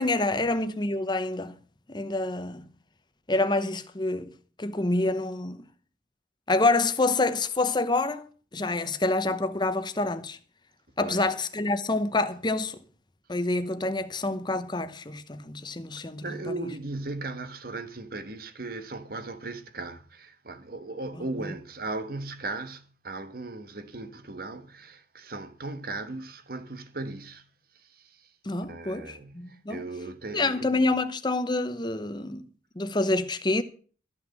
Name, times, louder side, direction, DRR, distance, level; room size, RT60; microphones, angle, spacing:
voice 1, 0.0-1.6 1.9-2.7 3.3-4.3 4.6-5.6 6.5-8.2 8.5-10.4 11.0-12.8 13.3-16.2 28.4-29.8 30.3-32.5 32.8-33.6, left 2 dB, 25° left, 0.9 m, -27 dB
voice 2, 16.0-27.5 27.7-28.3 28.7-30.9, right 2 dB, 55° right, 1.3 m, -37 dB
13.5 x 6.1 x 7.6 m
head